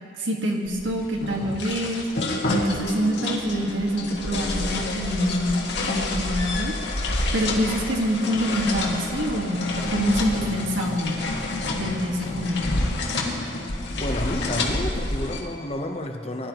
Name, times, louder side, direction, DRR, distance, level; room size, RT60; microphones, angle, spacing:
voice 1, 0.2-2.0 2.5-5.5 5.8-6.8 7.3-11.2 11.7-12.6, equal, 90° right, 0 dB, 1.7 m, -26 dB
sound 1, 0.7-15.4, left 2 dB, 70° left, 1.7 m, -28 dB
voice 2, 14.0-16.5, left 1 dB, 30° left, 4 dB, 0.9 m, -30 dB
20.0 x 11.5 x 3.0 m, 2.2 s
head